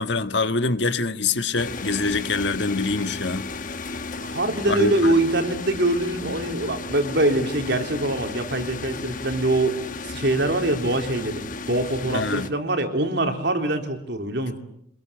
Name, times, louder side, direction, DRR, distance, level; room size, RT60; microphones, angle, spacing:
voice 1, 0.0-3.6 4.7-5.1 12.1-12.5, left 3 dB, 60° left, 1.6 m, -24 dB
sound 1, 1.6-12.5, left 3 dB, 45° left, 1.2 m, -34 dB
voice 2, 4.2-9.8 10.0-14.6, right 1 dB, 60° right, 4.1 m, -24 dB
26.5 x 22.5 x 8.9 m
head